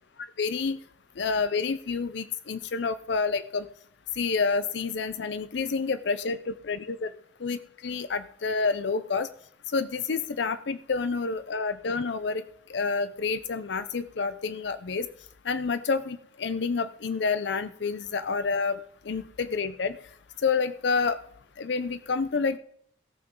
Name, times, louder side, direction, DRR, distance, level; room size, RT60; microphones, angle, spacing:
voice 1, 0.4-0.8 1.2-3.7 4.2-7.1 7.4-9.3 9.7-12.4 12.7-15.1 15.5-18.8 19.1-20.0 20.4-21.2 21.6-22.6, left 4 dB, 70° left, 13 dB, 0.5 m, -28 dB
17.5 x 6.0 x 5.2 m, 0.66 s
head